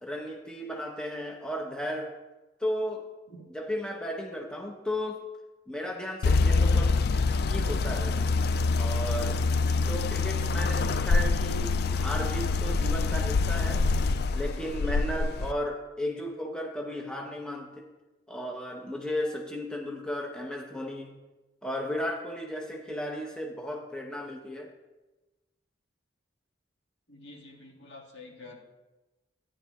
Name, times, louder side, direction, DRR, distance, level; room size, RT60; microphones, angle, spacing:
voice 1, 0.0-2.1 2.6-3.1 3.5-5.2 5.7-7.0 7.5-8.2 8.8-9.4 9.9-13.9 14.3-17.9 18.3-21.1 21.6-24.7, left 1 dB, 5° left, 0 dB, 0.7 m, -34 dB
sound 1, 6.2-15.5, left 3 dB, 50° left, 0.3 m, -26 dB
voice 2, 27.1-28.6, left 2 dB, 75° left, 0 dB, 1.8 m, -48 dB
13.5 x 9.9 x 2.3 m, 1.1 s
head